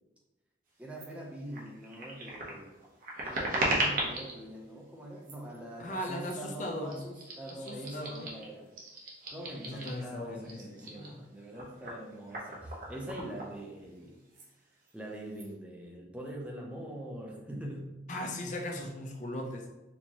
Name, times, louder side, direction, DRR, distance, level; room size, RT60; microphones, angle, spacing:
voice 1, 0.8-2.7 3.2-8.7 9.3-14.2 14.9-18.0, right 1 dB, 5° right, -1 dB, 0.5 m, -43 dB
sound 1, 1.0-1.1 1.5-4.4 5.2-5.6 6.2-6.5 6.8-10.1 10.4-14.0 14.3-14.5 14.8-15.5, right 1 dB, 50° right, 0.9 m, -37 dB
voice 2, 5.8-7.0 7.7-8.3 9.6-11.1 18.1-19.7, left 1 dB, 40° left, 2 dB, 0.5 m, -38 dB
4.5 x 2.8 x 2.8 m, 1.1 s
head